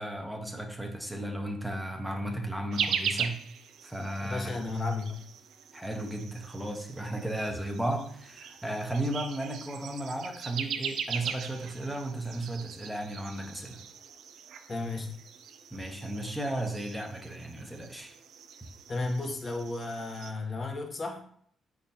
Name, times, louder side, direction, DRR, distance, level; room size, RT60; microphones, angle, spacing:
voice 1, 0.0-3.4 3.8-4.5 5.7-13.8 15.7-18.2, right 1 dB, 5° right, 3 dB, 0.9 m, -34 dB
sound 1, 2.7-20.3, right 7 dB, 75° right, 0.4 m, -40 dB
voice 2, 4.2-5.2 14.7-15.1 18.9-21.2, left 3 dB, 35° left, 3 dB, 0.8 m, -33 dB
4.8 x 3.9 x 2.8 m, 0.62 s
cardioid pair, 90°, 0 cm